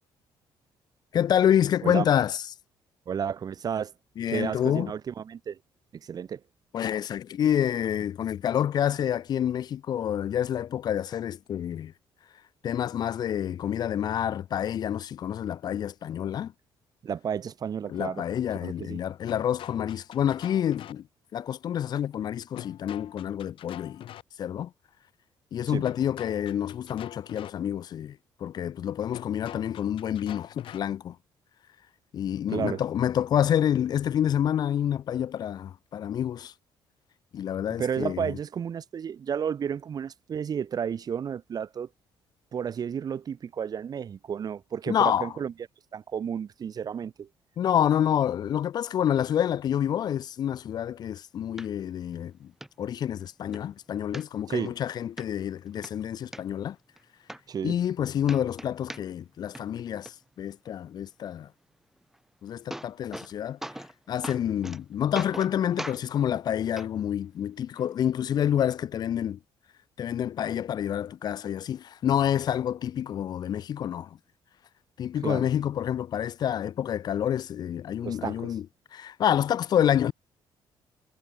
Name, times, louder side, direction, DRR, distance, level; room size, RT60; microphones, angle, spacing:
voice 1, 1.1-2.5 4.2-4.9 6.7-11.9 12.6-16.5 17.9-21.1 21.3-24.0 24.4-24.7 25.5-31.2 32.1-36.5 37.3-38.4 44.9-45.4 47.6-52.5 52.8-56.8 57.6-61.5 62.4-63.6 64.1-69.4 70.0-74.2 75.0-78.7 78.9-80.1, left 10 dB, 50° left, 0.3 m, -28 dB
voice 2, 3.1-3.9 4.3-5.6 6.0-6.4 17.0-18.2 18.6-19.0 25.7-25.8 32.5-32.8 37.8-41.9 42.5-45.5 45.9-47.3 54.5-54.7 57.5-57.7 75.2-75.5 78.0-78.5, right 7 dB, 45° right, 1.2 m, -32 dB
sound 1, 19.3-20.9 22.6-24.2 25.8-27.5 29.1-30.8, left 12 dB, 70° left, 4.0 m, -44 dB
sound 2, 51.6-51.7 52.1-52.2 52.6-52.7 53.2-53.6 54.1-54.7 55.2-55.3 55.7-56.4 57.0-57.1 57.3-58.0 58.2-59.3 59.5-60.1 62.1-62.2 62.5-63.3 63.6-63.9 64.2-64.8 65.1-65.5 65.8-66.0 66.8-66.9 67.8-67.9, right 1 dB, 5° right, 1.6 m, -39 dB
cardioid pair, 100°, 9 cm